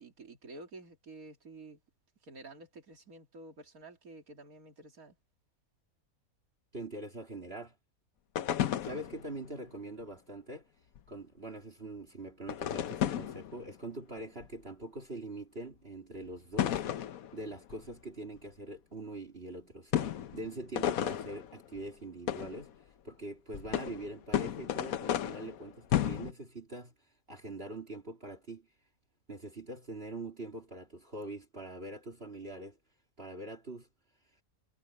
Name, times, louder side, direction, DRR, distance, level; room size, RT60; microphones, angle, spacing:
voice 1, 0.0-1.8 2.2-5.2, right 2 dB, 75° right, 3.2 m, -50 dB
voice 2, 6.7-7.7 8.8-10.7 11.1-16.8 17.3-22.8 23.0-26.9 27.3-28.7 29.3-32.8 33.2-33.9, right 2 dB, 40° right, 3.1 m, -43 dB
sound 1, 8.4-9.4 11.0-11.1 12.5-13.7 14.4-14.5 16.6-17.9 18.4-18.5 19.9-21.8 22.3-22.7 23.5-26.3, left 11 dB, 75° left, 1.3 m, -33 dB
omnidirectional pair, 1.5 m